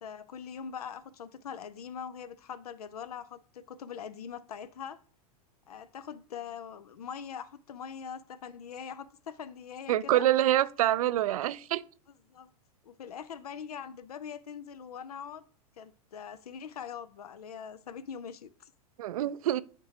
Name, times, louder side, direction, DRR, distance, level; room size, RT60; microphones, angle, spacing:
voice 1, 0.0-5.0 5.7-10.3 12.3-12.5 12.8-15.4 15.8-18.7, left 7 dB, 80° left, 0.6 m, -42 dB
voice 2, 9.9-11.8 19.0-19.6, right 13 dB, 65° right, 0.4 m, -26 dB
10.0 x 3.7 x 2.8 m
hypercardioid pair, 100°, 19 cm